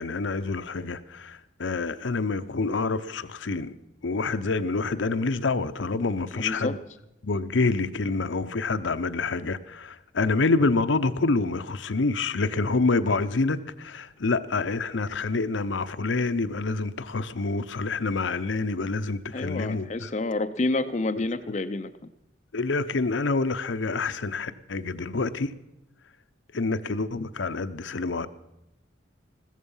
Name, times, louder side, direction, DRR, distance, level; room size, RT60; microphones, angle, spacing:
voice 1, 0.0-3.7 4.0-6.8 7.2-20.1 22.5-25.5 26.5-28.3, left 3 dB, 75° left, 0.7 m, -27 dB
voice 2, 6.3-6.8 19.3-21.9, left 2 dB, 35° left, 0.5 m, -28 dB
15.5 x 14.0 x 5.5 m
head